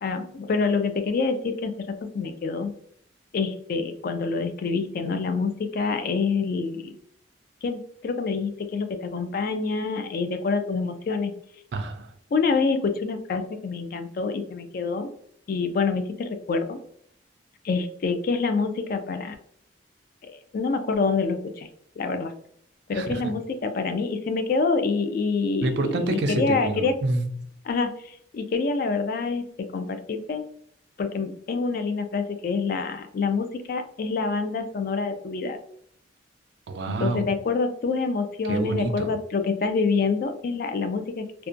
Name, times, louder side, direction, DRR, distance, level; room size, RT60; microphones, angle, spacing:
voice 1, 0.0-2.7 3.3-6.9 7.6-11.3 12.3-15.1 15.5-16.8 17.6-19.4 20.2-21.7 22.0-22.3 22.9-27.0 27.7-30.4 31.0-35.6 37.0-41.5, left 4 dB, 50° left, 8 dB, 0.3 m, -26 dB
voice 2, 11.7-12.1 22.9-23.2 25.6-27.3 36.7-37.3 38.5-39.1, right 2 dB, 60° right, 7 dB, 0.3 m, -27 dB
2.5 x 2.1 x 2.5 m, 0.66 s
head